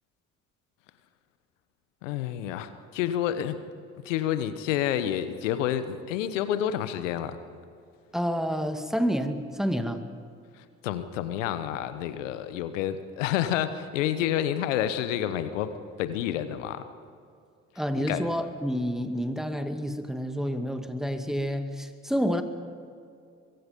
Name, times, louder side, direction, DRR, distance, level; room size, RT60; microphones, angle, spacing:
voice 1, 2.0-3.6 4.0-7.4 10.8-15.7 16.0-16.8 18.0-18.3, left 11 dB, 85° left, 12 dB, 1.1 m, -29 dB
voice 2, 8.1-10.0 17.8-22.4, equal, ahead, 6 dB, 2.3 m, -29 dB
23.5 x 22.5 x 5.3 m, 2.4 s
hypercardioid pair, 45°, 37 cm